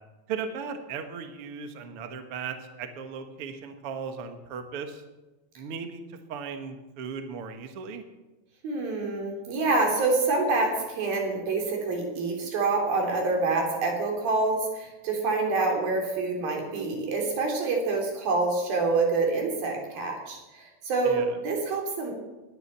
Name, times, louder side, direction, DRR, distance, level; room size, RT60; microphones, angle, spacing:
voice 1, 0.3-5.0 5.6-8.0 21.0-21.4, right 6 dB, 50° right, 6 dB, 1.9 m, -37 dB
voice 2, 8.6-22.1, right 3 dB, 85° right, 1 dB, 5.2 m, -26 dB
19.5 x 10.0 x 7.4 m, 1.1 s
omnidirectional pair, 4.1 m